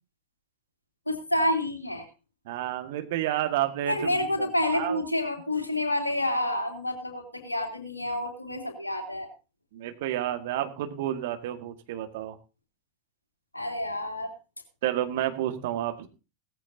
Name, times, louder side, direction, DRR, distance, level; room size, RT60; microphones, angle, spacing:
voice 1, 1.1-2.1 3.9-9.3 13.5-14.3, left 1 dB, 85° left, 3 dB, 3.0 m, -28 dB
voice 2, 2.5-4.1 4.7-5.0 9.7-12.3 14.8-16.1, right 12 dB, 55° right, 8 dB, 1.7 m, -30 dB
17.5 x 14.0 x 2.7 m, 0.30 s
figure-of-eight pair, 90°, 0 cm